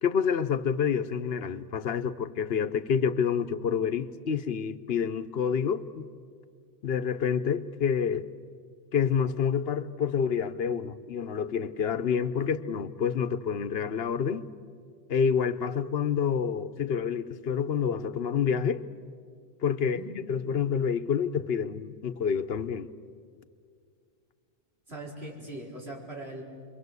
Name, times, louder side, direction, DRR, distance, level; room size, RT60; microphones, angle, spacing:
voice 1, 0.0-6.1 6.8-8.3 8.9-14.5 15.1-18.8 19.6-20.0 20.3-22.9, left 7 dB, 70° left, 1.0 m, -28 dB
voice 2, 19.8-20.2 24.9-26.4, right 1 dB, 80° right, 4.9 m, -41 dB
29.0 x 23.0 x 8.1 m
omnidirectional pair, 1.1 m